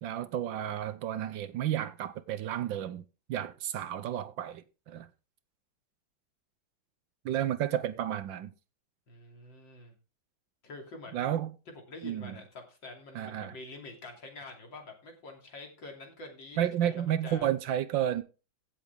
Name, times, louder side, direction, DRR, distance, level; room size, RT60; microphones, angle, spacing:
voice 1, 0.0-3.0 3.3-5.1 7.2-8.5 11.1-11.5 12.0-12.4 13.1-13.6 16.6-18.2, right 11 dB, 70° right, 1.4 m, -32 dB
voice 2, 9.1-9.9 10.6-11.3 11.9-17.5, left 2 dB, 65° left, 3.5 m, -46 dB
16.5 x 7.3 x 3.5 m
omnidirectional pair, 2.2 m